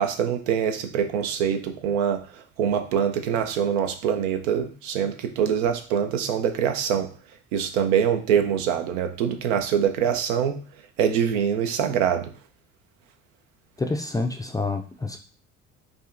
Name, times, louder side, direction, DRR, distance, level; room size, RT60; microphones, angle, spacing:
voice 1, 0.0-2.2 2.6-7.1 7.5-10.6 11.0-12.3, right 8 dB, 75° right, 7 dB, 0.6 m, -24 dB
voice 2, 13.8-15.2, left 3 dB, 10° left, 4 dB, 0.4 m, -28 dB
4.9 x 2.4 x 2.5 m, 0.39 s
hypercardioid pair, 60°, 38 cm